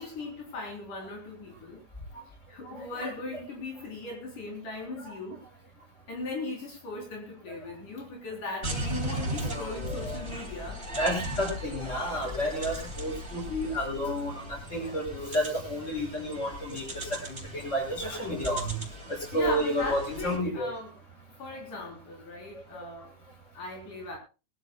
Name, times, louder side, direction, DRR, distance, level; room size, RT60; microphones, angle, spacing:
voice 1, 0.0-1.8 2.3-5.4 6.1-10.9 19.3-21.0 21.4-23.2 23.5-24.2, left 2 dB, 70° left, 0 dB, 5.3 m, -38 dB
voice 2, 2.6-3.1 5.0-5.2 9.2-10.3 11.0-18.8 19.1-20.7, equal, 20° left, 1 dB, 6.3 m, -31 dB
sound 1, 8.6-20.4, equal, 20° right, 3.5 m, -37 dB
23.0 x 13.5 x 2.3 m, 0.31 s
omnidirectional pair, 3.8 m